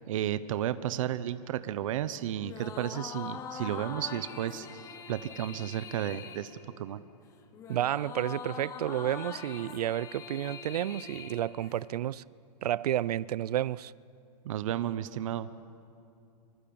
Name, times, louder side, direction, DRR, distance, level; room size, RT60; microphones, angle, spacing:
voice 1, 0.1-4.7 5.1-7.0 14.4-15.5, right 11 dB, 50° right, 1.0 m, -33 dB
sound 1, 2.4-12.1, left 6 dB, 15° left, 1.1 m, -43 dB
voice 2, 7.7-12.2 12.6-13.9, right 12 dB, 65° right, 0.6 m, -31 dB
26.0 x 24.0 x 8.8 m
hypercardioid pair, 170°, 21 cm